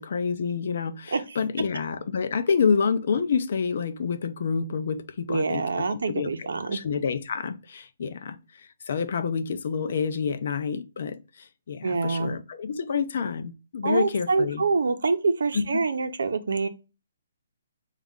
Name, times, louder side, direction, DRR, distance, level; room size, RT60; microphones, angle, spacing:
voice 1, 0.0-5.6 5.9-14.6 15.5-15.8, left 6 dB, 45° left, 0.5 m, -28 dB
voice 2, 5.3-6.8 11.8-12.3 13.8-16.7, right 4 dB, 85° right, 0.7 m, -26 dB
4.2 x 2.4 x 3.6 m
hypercardioid pair, 175°, 0 cm